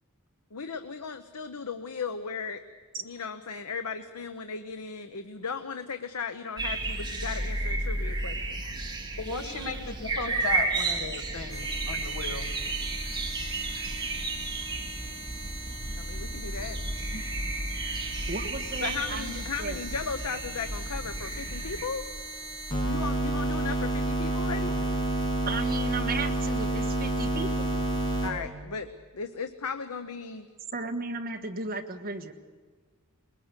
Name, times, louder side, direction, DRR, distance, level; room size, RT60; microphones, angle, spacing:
voice 1, 0.5-2.6 3.0-8.6 16.0-16.8 18.8-22.1 22.8-24.7 28.2-28.9 29.1-30.5, left 5 dB, 85° left, 8 dB, 0.9 m, -36 dB
sound 1, 6.6-21.9, right 2 dB, 20° right, 2.3 m, -33 dB
voice 2, 9.2-12.5 17.1-17.2, left 3 dB, 70° left, 5 dB, 2.3 m, -36 dB
sound 2, 11.5-28.3, right 2 dB, 20° left, 7.0 m, -32 dB
voice 3, 18.3-19.8 25.5-27.7 30.7-32.3, right 3 dB, 40° right, 6 dB, 1.5 m, -35 dB
21.5 x 20.5 x 8.2 m, 1.5 s
head